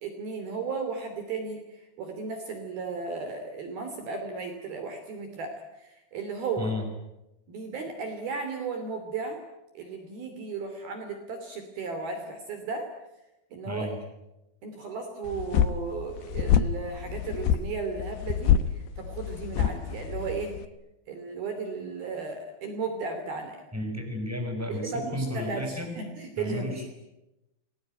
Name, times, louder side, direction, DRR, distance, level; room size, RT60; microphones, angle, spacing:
voice 1, 0.0-6.7 7.5-9.4 9.7-12.9 13.5-13.9 14.6-20.6 21.1-23.6 24.7-26.9, right 4 dB, 55° right, 6 dB, 4.4 m, -35 dB
voice 2, 6.6-6.9 13.6-14.0 23.7-26.0 26.4-26.9, left 1 dB, 5° right, 4 dB, 5.7 m, -32 dB
sound 1, 15.3-20.7, left 9 dB, 70° left, 3.1 m, -26 dB
28.5 x 22.0 x 9.2 m, 0.94 s
omnidirectional pair, 5.5 m